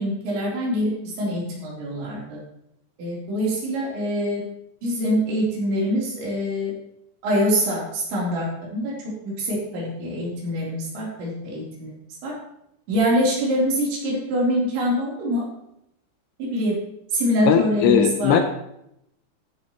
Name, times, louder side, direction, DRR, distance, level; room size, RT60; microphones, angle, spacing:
voice 1, 0.0-2.4 3.0-4.4 4.8-6.7 7.2-11.9 12.2-12.3 12.9-15.5 16.4-16.8 17.1-18.4, equal, 75° right, -4 dB, 6.0 m, -24 dB
voice 2, 17.5-18.4, left 8 dB, 80° left, 7 dB, 2.6 m, -18 dB
15.0 x 10.5 x 3.1 m, 0.78 s
omnidirectional pair, 5.2 m